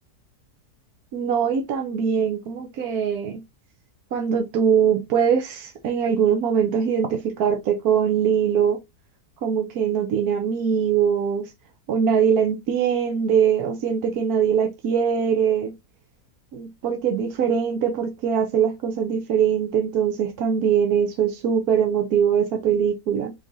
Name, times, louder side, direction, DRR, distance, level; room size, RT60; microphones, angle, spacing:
voice 1, 1.1-3.4 4.1-8.8 9.4-11.5 11.9-15.7 16.5-23.3, right 7 dB, 70° right, 1.2 m, -22 dB
3.8 x 3.3 x 3.9 m
omnidirectional pair, 1.7 m